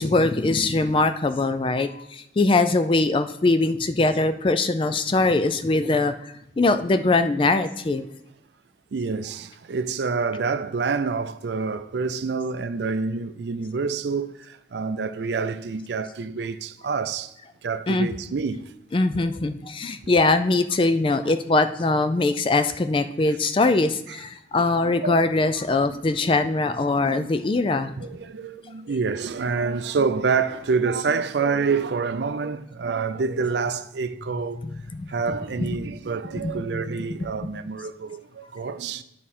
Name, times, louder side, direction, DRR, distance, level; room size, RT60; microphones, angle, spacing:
voice 1, 0.0-8.1 17.9-18.1 18.9-27.9 34.9-35.1 35.6-35.8 36.4-36.5 36.9-37.0, left 3 dB, 30° left, 0.3 m, -22 dB
voice 2, 8.9-17.3 17.6-18.7 20.0-20.1 21.2-21.3 24.1-24.2 24.5-25.2 27.0-27.3 27.7-34.6 35.1-39.0, right 5 dB, 70° right, 0.4 m, -27 dB
9.2 x 4.9 x 4.2 m
head